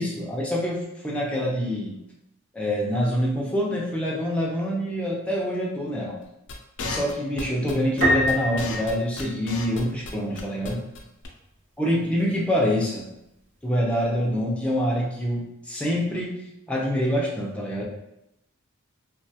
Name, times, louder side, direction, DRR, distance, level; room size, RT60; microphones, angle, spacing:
voice 1, 0.0-2.0 2.5-6.2 6.8-10.8 11.8-13.1 13.6-16.4 16.7-17.8, equal, 5° left, -4 dB, 0.5 m, -26 dB
sound 1, 6.5-10.1 10.3-10.7 10.9-11.0 11.2-11.3, left 3 dB, 60° left, 0.4 m, -33 dB
Piano, 8.0-9.8, equal, 40° right, 0.8 m, -26 dB
2.4 x 2.3 x 2.7 m, 0.83 s
head